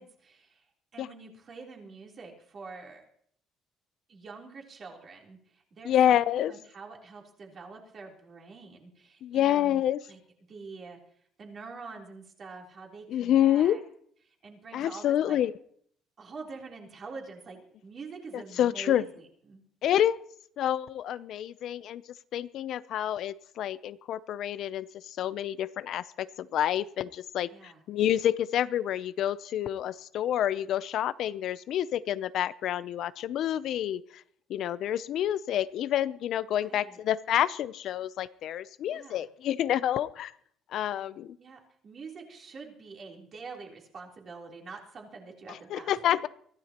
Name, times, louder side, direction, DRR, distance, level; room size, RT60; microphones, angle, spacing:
voice 1, 0.0-3.1 4.1-9.8 10.1-10.2 10.5-13.8 14.2-15.4 16.2-19.6 27.5-27.8 36.5-37.0 38.9-39.2 41.4-46.0, right 4 dB, 35° right, 0 dB, 3.5 m, -46 dB
voice 2, 5.8-6.5 9.2-10.0 13.1-13.8 14.7-15.5 18.3-19.0 19.8-20.2 20.6-22.0 22.3-34.2 34.5-40.3 40.7-41.4 45.5-46.3, left 11 dB, 55° left, 16 dB, 0.5 m, -28 dB
23.5 x 16.0 x 3.0 m, 0.62 s
cardioid pair, 150°, 0 cm